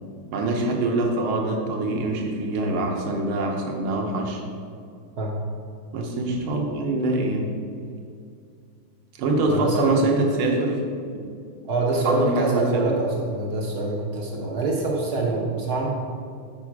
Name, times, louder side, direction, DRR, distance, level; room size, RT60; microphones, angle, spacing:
voice 1, 0.3-4.4 5.9-7.5 9.1-11.2 11.9-13.0, right 2 dB, 75° right, 1 dB, 1.8 m, -25 dB
voice 2, 9.4-10.1 11.7-15.9, right 3 dB, 60° right, -1 dB, 1.2 m, -25 dB
7.4 x 4.9 x 4.7 m, 2.3 s
omnidirectional pair, 2.4 m